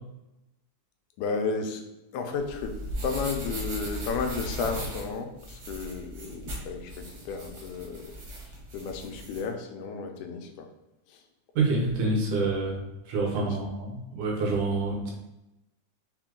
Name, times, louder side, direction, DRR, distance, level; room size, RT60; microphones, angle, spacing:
voice 1, 1.2-1.8 2.1-8.1 8.7-10.7 11.1-11.2 13.4-13.6, left 5 dB, 85° left, 4 dB, 2.0 m, -33 dB
sound 1, 2.3-9.4, right 1 dB, 60° right, 1.1 m, -38 dB
voice 2, 11.6-15.1, right 3 dB, 80° right, -1 dB, 2.4 m, -27 dB
5.5 x 2.2 x 3.7 m, 0.92 s
omnidirectional pair, 3.5 m